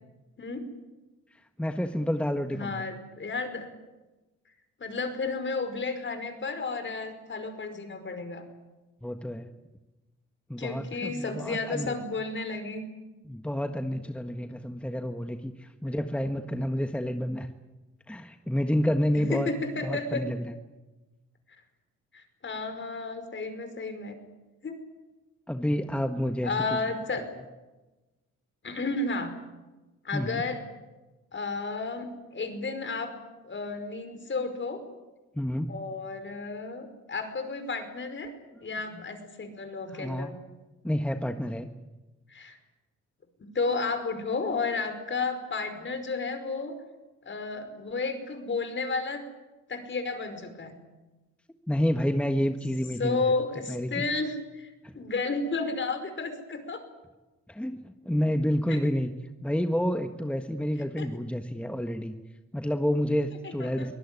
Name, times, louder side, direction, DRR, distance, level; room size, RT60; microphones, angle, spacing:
voice 1, 1.6-2.8 9.0-9.5 10.5-11.9 13.2-17.5 18.1-19.5 19.8-20.4 25.5-26.8 30.1-30.4 35.3-35.7 38.9-39.0 39.9-40.3 40.8-41.7 51.7-53.2 53.7-54.0 54.8-54.9 57.5-59.1 59.4-62.2 62.5-63.9, equal, 5° left, 7 dB, 1.5 m, -29 dB
voice 2, 2.5-3.7 4.8-8.4 10.6-12.8 15.9-16.0 19.1-20.2 22.1-24.2 24.6-24.8 26.4-27.3 28.6-29.3 30.0-30.6 31.3-33.1 33.4-34.8 35.7-38.3 38.6-40.4 42.3-42.6 43.4-46.8 47.3-49.2 49.7-50.8 53.0-56.8 58.7-58.8 61.0-61.1 63.6-63.9, left 3 dB, 40° left, 9 dB, 5.2 m, -32 dB
24.0 x 18.0 x 9.9 m, 1.1 s
cardioid pair, 90°, 30 cm